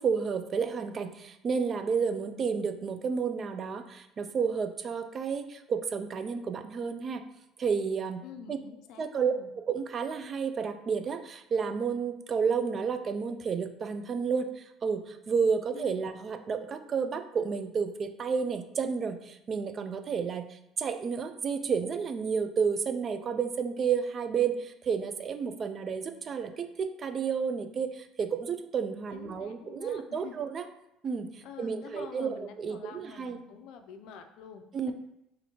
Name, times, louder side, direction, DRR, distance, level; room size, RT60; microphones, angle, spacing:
voice 1, 0.0-7.2 7.6-8.2 8.5-8.6 9.0-9.3 9.7-30.7 31.0-33.4 34.7-34.9, right 6 dB, 40° right, 8 dB, 0.3 m, -31 dB
voice 2, 8.2-9.5 15.7-15.9 29.1-30.4 31.4-34.9, left 7 dB, 75° left, 7 dB, 0.4 m, -48 dB
4.1 x 2.6 x 2.9 m, 0.83 s
cardioid pair, 110°, 0 cm